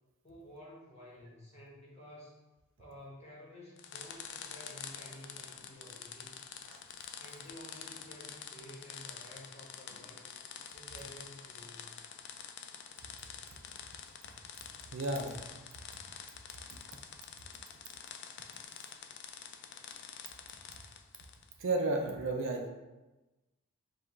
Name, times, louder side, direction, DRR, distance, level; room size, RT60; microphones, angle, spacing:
voice 1, 0.2-2.4 2.8-6.4 7.2-10.4 10.7-12.0, equal, 30° left, -4 dB, 1.1 m, -52 dB
sound 1, 3.8-21.5, left 7 dB, 50° left, 0.3 m, -48 dB
voice 2, 14.9-15.4 21.6-22.7, right 2 dB, 60° right, 3 dB, 0.5 m, -32 dB
3.8 x 2.4 x 4.6 m, 1.1 s
head